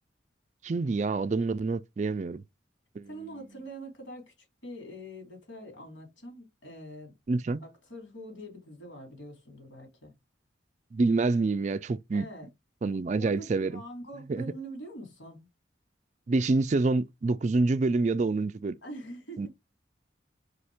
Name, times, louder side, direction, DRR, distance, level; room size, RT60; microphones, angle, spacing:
voice 1, 0.6-2.4 3.0-3.1 7.3-7.6 10.9-12.3 12.8-13.7 14.3-14.4 16.3-18.8 19.4-19.5, right 3 dB, 35° right, 0.3 m, -27 dB
voice 2, 3.1-7.1 7.6-10.1 12.1-12.5 13.1-15.5 18.8-19.5, right 1 dB, 85° left, 3.1 m, -44 dB
5.0 x 4.3 x 4.9 m
head